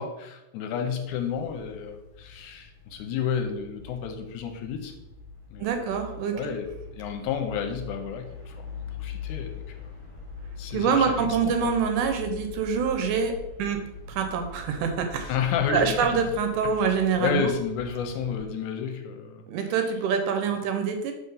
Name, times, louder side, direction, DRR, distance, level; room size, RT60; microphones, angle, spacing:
voice 1, 0.0-4.9 5.5-5.9 6.3-6.7 6.9-8.6 9.0-9.6 10.6-11.5 15.3-15.9 16.8-19.4, left 7 dB, 80° left, 5 dB, 2.0 m, -31 dB
sound 1, 1.0-18.4, left 4 dB, 25° left, 0.5 m, -42 dB
voice 2, 5.6-6.5 10.7-13.3 13.6-13.8 14.1-15.3 15.7-17.5 19.5-21.1, right 6 dB, 80° right, 5 dB, 2.1 m, -25 dB
5.7 x 3.6 x 5.4 m, 0.91 s
omnidirectional pair, 3.7 m